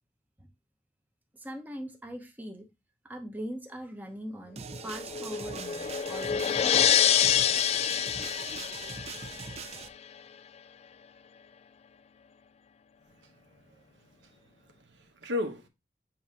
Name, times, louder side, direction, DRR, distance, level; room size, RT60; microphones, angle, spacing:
voice 1, 1.3-2.7 3.0-6.8, equal, 10° right, 0.9 m, -41 dB
sound 1, 4.6-9.9, right 5 dB, 35° right, 0.5 m, -42 dB
sound 2, 4.7-9.8, left 9 dB, 35° left, 0.3 m, -27 dB
voice 2, 13.1-14.3 14.6-15.7, left 2 dB, 85° right, 1.0 m, -38 dB
7.8 x 2.7 x 4.8 m
head